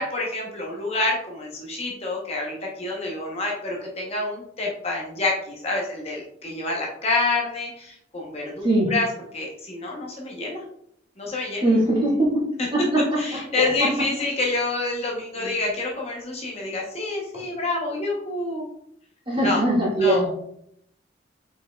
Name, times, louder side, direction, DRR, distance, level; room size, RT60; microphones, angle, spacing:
voice 1, 0.0-9.1 9.3-10.6 11.2-11.7 13.2-18.6 19.4-19.6 20.0-20.2, left 2 dB, 35° left, -2 dB, 0.8 m, -27 dB
voice 2, 11.6-12.4 12.7-13.9 15.3-15.5 19.3-20.3, right 1 dB, 30° right, -4 dB, 1.7 m, -22 dB
5.0 x 4.7 x 2.2 m, 0.72 s
head